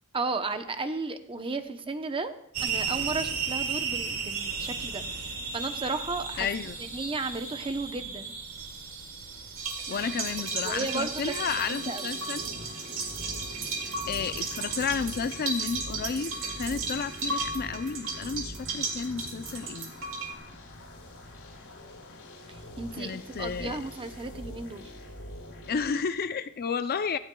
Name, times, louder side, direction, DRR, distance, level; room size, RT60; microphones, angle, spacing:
voice 1, 0.1-2.3 2.6-6.5 6.8-8.3 10.6-12.1 22.5-24.8, right 3 dB, 25° right, 8 dB, 0.7 m, -34 dB
sound 1, 2.5-10.1, right 5 dB, 85° right, 2.1 m, -34 dB
voice 2, 6.4-6.8 9.9-12.5 14.1-19.9 23.0-23.8 25.7-27.2, left 6 dB, 45° left, 11 dB, 0.5 m, -32 dB
sound 2, 9.6-20.3, right 4 dB, 70° right, 2.1 m, -34 dB
sound 3, 9.9-25.9, left 1 dB, 90° left, 3.5 m, -44 dB
17.5 x 14.0 x 2.3 m, 0.72 s
head